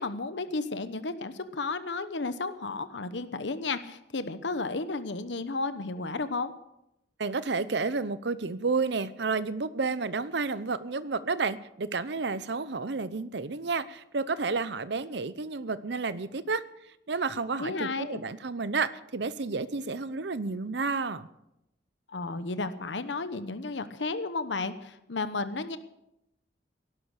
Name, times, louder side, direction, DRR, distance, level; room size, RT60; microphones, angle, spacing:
voice 1, 0.0-6.5 17.6-18.2 22.1-25.8, left 3 dB, 75° left, 12 dB, 1.0 m, -33 dB
voice 2, 7.2-16.6 17.1-21.3, right 4 dB, 65° right, 15 dB, 0.7 m, -31 dB
17.0 x 11.5 x 6.6 m, 0.86 s
head